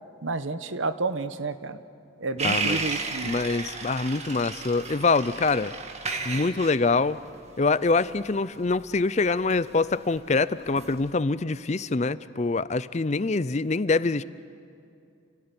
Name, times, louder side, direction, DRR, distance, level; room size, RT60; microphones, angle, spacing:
voice 1, 0.2-1.8 2.2-3.4, right 3 dB, 85° right, 11 dB, 1.1 m, -30 dB
voice 2, 2.4-2.8 3.2-5.7 6.2-7.2 7.6-14.2, left 3 dB, 35° left, 17 dB, 0.5 m, -25 dB
sound 1, 2.4-10.2 10.7-11.1, right 4 dB, 35° right, 1.9 m, -33 dB
28.5 x 17.0 x 9.6 m, 2.5 s
head